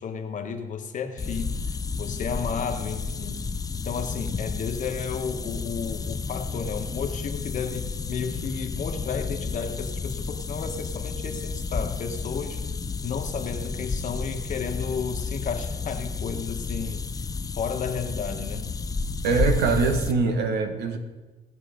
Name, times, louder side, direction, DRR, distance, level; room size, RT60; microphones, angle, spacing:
voice 1, 0.0-3.5 3.7-12.6 13.0-17.0 17.5-18.6, left 6 dB, 50° left, 5 dB, 1.5 m, -33 dB
sound 1, 1.2-20.1, left 4 dB, 20° left, 0.5 m, -31 dB
voice 2, 19.2-21.0, right 4 dB, 75° right, 7 dB, 1.6 m, -23 dB
18.0 x 6.7 x 5.2 m, 1.2 s
cardioid pair, 110°, 17 cm